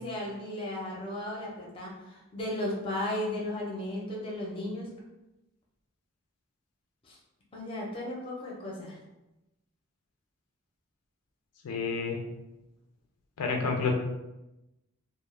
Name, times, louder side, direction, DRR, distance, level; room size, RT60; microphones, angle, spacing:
voice 1, 0.0-4.9 7.0-7.2 7.5-9.0, left 1 dB, 25° left, -3 dB, 0.5 m, -35 dB
voice 2, 11.6-12.2 13.4-13.9, left 4 dB, 90° left, 2 dB, 0.4 m, -29 dB
2.2 x 2.0 x 3.1 m, 0.96 s
head